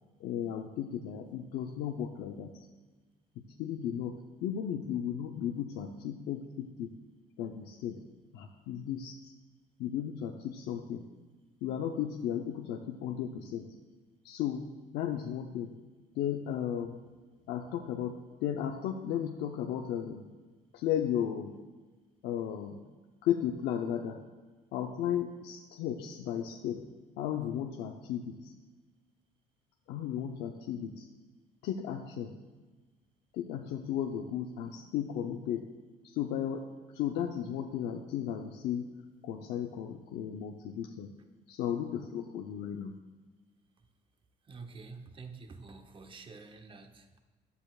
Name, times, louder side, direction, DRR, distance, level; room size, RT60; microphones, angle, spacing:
voice 1, 0.2-2.7 3.4-6.9 7.4-8.0 8.3-9.3 9.8-11.0 11.6-13.7 14.2-14.7 14.9-15.7 16.2-17.0 17.5-20.3 20.7-21.5 22.2-22.8 23.2-24.2 24.7-26.9 27.2-28.5 29.9-31.1 31.6-32.4 33.3-35.7 36.0-36.6 36.9-38.9 39.2-41.2 41.5-42.9, left 9 dB, 85° left, 3 dB, 0.7 m, -35 dB
voice 2, 44.5-47.2, right 4 dB, 30° right, 6 dB, 0.9 m, -48 dB
14.0 x 9.9 x 2.4 m, 1.3 s
cardioid pair, 110°, 17 cm